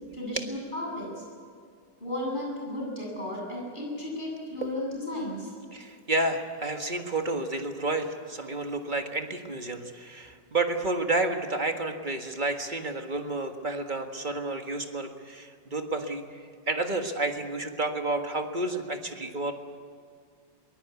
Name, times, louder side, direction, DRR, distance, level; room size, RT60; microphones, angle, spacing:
voice 1, 0.1-1.2 2.0-5.5, left 1 dB, 25° left, -2 dB, 8.1 m, -34 dB
voice 2, 5.7-16.4 16.7-19.5, right 2 dB, 25° right, 5 dB, 1.6 m, -30 dB
23.5 x 20.5 x 8.4 m, 2.1 s
omnidirectional pair, 2.0 m